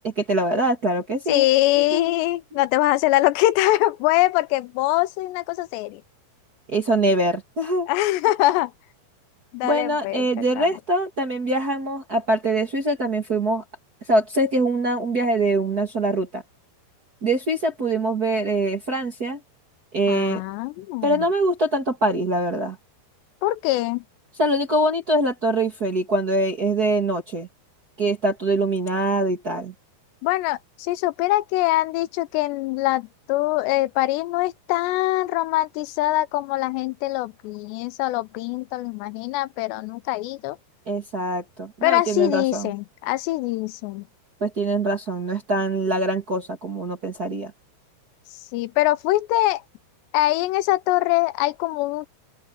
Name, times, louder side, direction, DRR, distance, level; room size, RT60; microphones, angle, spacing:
voice 1, 0.0-1.4 1.7-2.2 6.7-7.9 9.6-13.6 14.1-16.4 17.2-19.4 19.9-20.4 21.0-22.8 24.4-27.5 28.0-29.7 40.8-42.7 44.4-47.5, right 1 dB, 35° right, 1.7 m, -23 dB
voice 2, 1.3-6.0 7.9-8.7 9.5-10.3 10.6-10.7 20.1-21.2 23.4-24.0 30.2-40.6 41.8-44.0 48.5-49.6 50.1-52.1, left 17 dB, 85° left, 2.9 m, -23 dB
open air
omnidirectional pair, 4.9 m